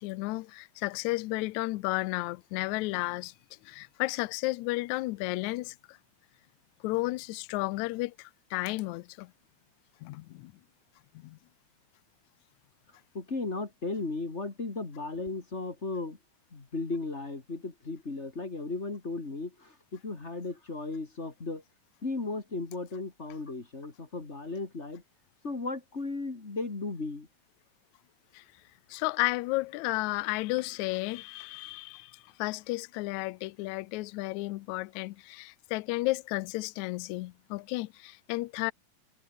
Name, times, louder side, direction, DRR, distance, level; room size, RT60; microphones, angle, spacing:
voice 1, 0.0-3.3 3.6-6.0 6.8-9.3 10.0-10.5 11.2-11.4 28.3-28.4 28.9-38.7, left 21 dB, 80° left, 1.9 m, -33 dB
voice 2, 13.1-16.2 16.5-21.6 22.0-25.0 25.4-27.3, left 3 dB, 25° left, 2.1 m, -36 dB
omnidirectional pair, 3.6 m